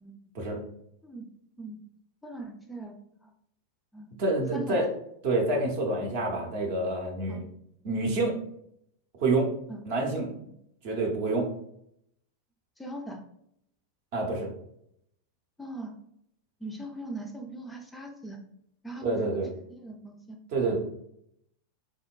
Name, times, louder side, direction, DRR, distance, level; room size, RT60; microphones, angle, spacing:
voice 1, 2.2-3.3 3.9-4.1 4.5-4.8 7.3-7.4 9.7-9.8 12.8-13.3 15.6-15.9 16.6-18.4 18.8-19.4 19.7-20.4, right 1 dB, 10° left, 2 dB, 0.4 m, -40 dB
voice 2, 4.2-4.9 5.2-7.4 7.8-8.4 9.2-9.5 9.9-10.3 10.8-11.5 14.1-14.5 19.0-19.5 20.5-20.8, right 2 dB, 50° right, 0 dB, 0.7 m, -27 dB
3.7 x 2.1 x 2.2 m, 0.74 s
figure-of-eight pair, 90°, 0 cm